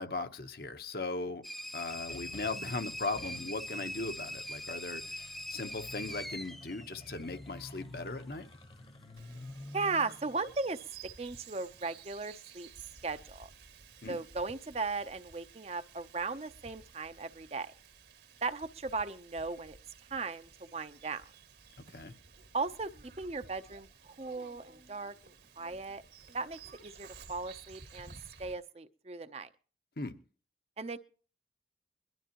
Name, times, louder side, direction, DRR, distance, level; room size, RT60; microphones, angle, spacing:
voice 1, 0.0-1.4 1.7-8.5 14.0-14.2 21.9-22.1 30.0-30.1, left 3 dB, 60° left, 8 dB, 1.0 m, -38 dB
sound 1, 1.4-7.8, equal, ahead, 0.6 m, -43 dB
sound 2, 1.6-12.0, left 1 dB, 30° left, 1.0 m, -51 dB
Bird vocalization bird call bird song, 9.2-28.5, right 5 dB, 75° right, 2.1 m, -55 dB
voice 2, 9.7-10.8 11.2-12.7 13.0-13.5 14.1-17.7 18.4-19.8 20.1-21.2 22.5-22.9 23.2-23.9 24.2-25.1 25.6-26.0 26.3-28.1 28.4-29.5 30.8-31.0, right 3 dB, 35° right, 11 dB, 0.6 m, -37 dB
22.5 x 12.5 x 3.0 m, 0.39 s
head